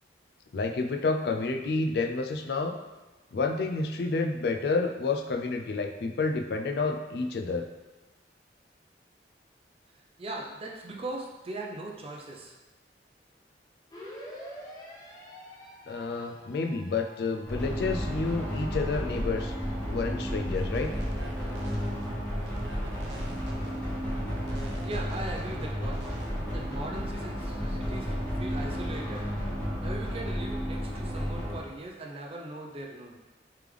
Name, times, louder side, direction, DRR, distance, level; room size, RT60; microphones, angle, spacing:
voice 1, 0.5-2.8 3.3-7.7 15.9-19.6 19.9-20.9, left 3 dB, 60° left, 5 dB, 0.3 m, -29 dB
voice 2, 10.2-12.5 24.8-26.0 26.5-29.2 29.8-33.2, right 2 dB, 30° right, 0 dB, 0.5 m, -39 dB
sound 1, 13.9-21.9, equal, 20° left, 0.6 m, -49 dB
sound 2, 17.5-31.6, equal, 5° left, 1.1 m, -32 dB
sound 3, 20.5-26.3, right 2 dB, 75° right, 0.6 m, -47 dB
3.4 x 3.2 x 3.4 m, 1.2 s
head